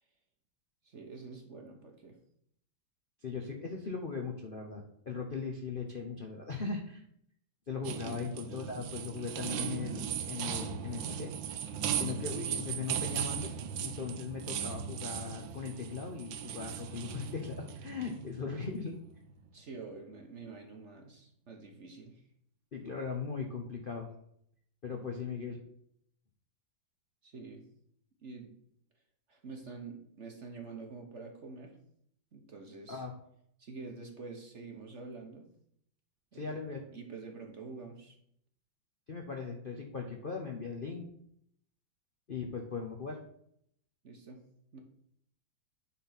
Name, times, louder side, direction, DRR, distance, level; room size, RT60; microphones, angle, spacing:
voice 1, 0.8-2.2 8.0-8.3 19.5-22.2 27.2-27.6 28.2-28.5 29.3-31.8 32.3-33.0 33.6-35.5 36.3-36.6 36.9-38.1 44.0-44.4 44.7-44.8, right 4 dB, 45° right, 3 dB, 1.1 m, -47 dB
voice 2, 3.2-7.0 7.7-11.3 12.0-13.5 13.8-18.9 22.7-24.1 24.8-25.6 32.9-33.1 36.3-36.8 39.1-41.1 42.3-43.2, left 5 dB, 45° left, 2 dB, 0.7 m, -39 dB
sound 1, 7.8-19.5, right 8 dB, 80° right, 1.4 m, -38 dB
9.1 x 4.3 x 5.8 m, 0.70 s
omnidirectional pair, 2.1 m